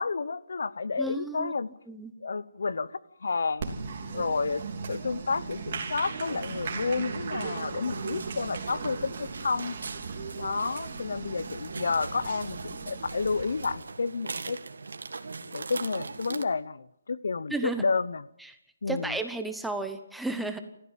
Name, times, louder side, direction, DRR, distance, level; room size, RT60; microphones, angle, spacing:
voice 1, 0.0-1.7 2.2-2.9 3.2-3.7 4.1-9.8 10.4-14.6 15.5-18.3 18.8-19.2, left 4 dB, 65° left, 0.9 m, -30 dB
voice 2, 1.0-1.5 1.9-2.1 17.5-17.8 18.9-20.6, right 2 dB, ahead, 0.9 m, -33 dB
Applause, 3.6-13.7, right 5 dB, 35° right, 3.2 m, -37 dB
sound 1, 7.9-16.4, right 4 dB, 90° right, 1.8 m, -41 dB
26.0 x 14.5 x 7.4 m
hypercardioid pair, 175°, 0 cm